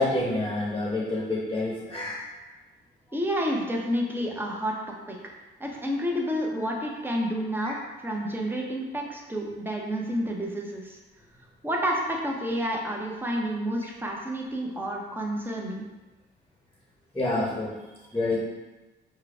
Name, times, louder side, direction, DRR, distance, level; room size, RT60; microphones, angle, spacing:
voice 1, 0.0-2.2 7.6-7.7 17.1-17.8 18.1-18.4, left 2 dB, 15° left, -4 dB, 1.0 m, -27 dB
voice 2, 3.1-5.2 5.6-11.0 11.6-15.8, equal, 10° right, -1 dB, 0.8 m, -30 dB
4.6 x 2.3 x 4.7 m, 1.1 s
cardioid pair, 90°, 20 cm